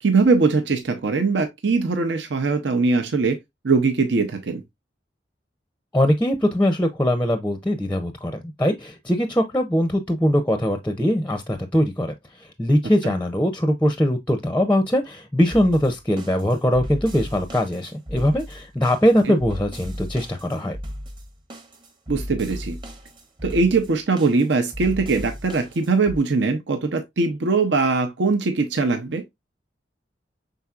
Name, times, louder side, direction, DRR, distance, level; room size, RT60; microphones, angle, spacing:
voice 1, 0.0-3.4 3.6-4.6 13.0-13.1 19.3-19.4 22.1-22.8 23.4-29.2, right 4 dB, 85° right, 0.7 m, -21 dB
voice 2, 5.9-12.1 12.6-20.8, equal, 10° left, 0.5 m, -21 dB
sound 1, 15.5-26.2, equal, 25° right, 0.8 m, -36 dB
5.6 x 3.8 x 2.4 m
head